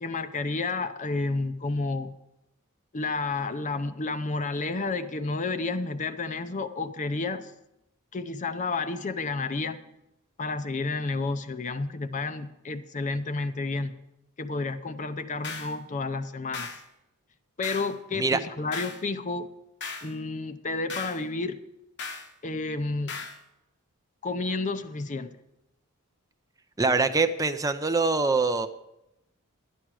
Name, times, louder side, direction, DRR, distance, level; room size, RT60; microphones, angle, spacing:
voice 1, 0.0-2.1 2.9-7.5 8.1-9.8 10.4-14.0 14.4-16.7 17.6-19.5 20.0-21.6 22.4-23.2 24.2-25.4, left 3 dB, 35° left, 11 dB, 0.6 m, -31 dB
sound 1, 15.4-15.8 16.5-16.8 17.6-17.9 18.7-19.0 19.8-20.1 20.9-21.2 22.0-22.3 23.1-23.4, left 4 dB, 55° left, 1.1 m, -37 dB
voice 2, 26.8-28.7, right 3 dB, 15° right, 8 dB, 0.5 m, -24 dB
12.5 x 10.0 x 4.8 m, 0.87 s
head